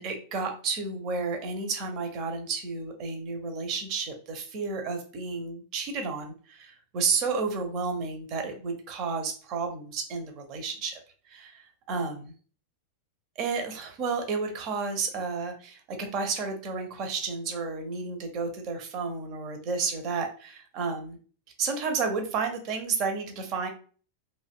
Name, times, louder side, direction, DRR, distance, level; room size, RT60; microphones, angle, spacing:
voice 1, 0.0-11.0 11.3-12.2 13.4-21.2 21.6-23.7, right 4 dB, 40° right, 5 dB, 0.5 m, -31 dB
2.5 x 2.1 x 2.3 m, 0.40 s
figure-of-eight pair, 90°, 0 cm